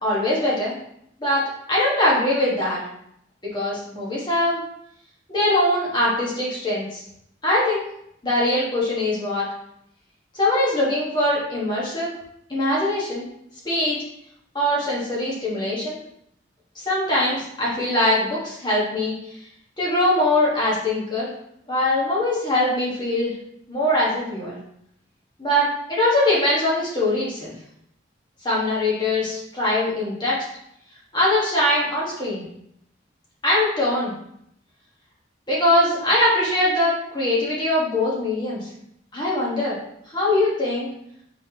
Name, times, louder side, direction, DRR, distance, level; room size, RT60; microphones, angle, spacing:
voice 1, 0.0-0.7 1.2-2.8 3.5-4.6 5.3-7.0 7.4-7.8 8.2-9.4 10.3-12.1 12.5-13.3 13.6-14.0 14.5-16.0 16.7-19.1 19.8-21.3 21.7-23.3 23.7-24.6 25.4-27.5 28.4-30.5 31.1-32.4 33.4-34.1 35.5-38.7 39.1-39.8 40.1-40.9, left 1 dB, 25° left, -6 dB, 1.3 m, -22 dB
4.3 x 3.5 x 2.8 m, 0.75 s
head